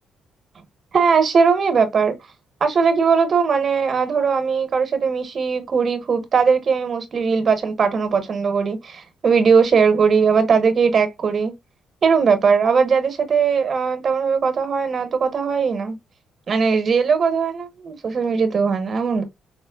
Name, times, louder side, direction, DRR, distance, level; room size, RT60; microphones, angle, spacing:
voice 1, 0.9-2.1 2.6-11.5 12.0-16.0 16.5-19.2, right 5 dB, 50° right, 0.8 m, -19 dB
4.3 x 2.0 x 2.2 m
cardioid pair, 90°, 0 cm